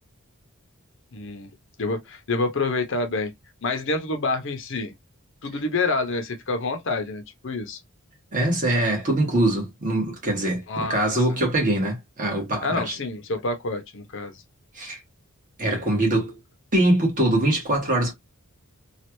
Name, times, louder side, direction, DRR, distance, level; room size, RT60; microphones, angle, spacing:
voice 1, 1.1-1.5 1.8-3.3 3.6-4.9 5.4-7.8 10.7-11.2 12.6-14.4, left 3 dB, 55° left, 0.7 m, -27 dB
voice 2, 8.3-10.6 10.9-12.9 14.7-15.0 15.6-16.4 16.7-18.1, right 1 dB, 35° right, 1.5 m, -23 dB
3.2 x 2.4 x 3.0 m
head